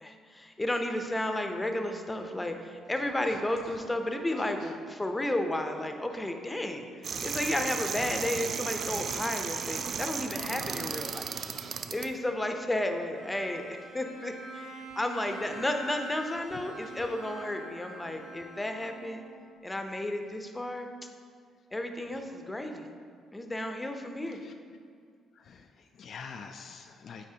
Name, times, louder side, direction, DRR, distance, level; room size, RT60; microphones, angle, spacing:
voice 1, 0.0-11.3 11.9-19.3 19.6-20.9 21.7-22.8 23.3-24.4, left 1 dB, 15° left, 5 dB, 0.7 m, -33 dB
voice 2, 4.4-4.7 16.8-17.1 24.3-24.5 25.3-27.3, left 5 dB, 60° left, 5 dB, 0.3 m, -47 dB
sound 1, 7.0-12.1, right 6 dB, 60° right, 0.3 m, -35 dB
Bowed string instrument, 13.1-19.5, right 1 dB, 80° right, 1.2 m, -45 dB
8.4 x 4.1 x 2.8 m, 2.1 s
supercardioid pair, 60°, 0 cm